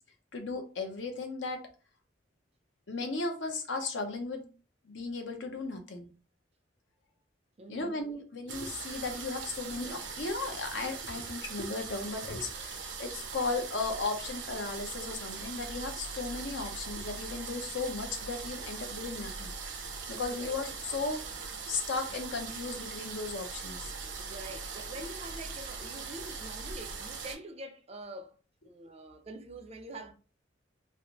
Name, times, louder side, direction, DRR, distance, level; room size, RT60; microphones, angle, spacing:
voice 1, 0.3-1.6 2.9-4.5 4.8-6.1 7.7-19.5 20.1-21.4 21.7-23.9, left 3 dB, 80° left, 0.8 m, -36 dB
voice 2, 7.6-8.0 20.3-20.5 24.2-28.4 28.6-30.1, right 1 dB, 35° right, 0.5 m, -45 dB
sound 1, 8.5-27.3, right 5 dB, 85° right, 0.7 m, -41 dB
3.3 x 2.5 x 2.9 m
head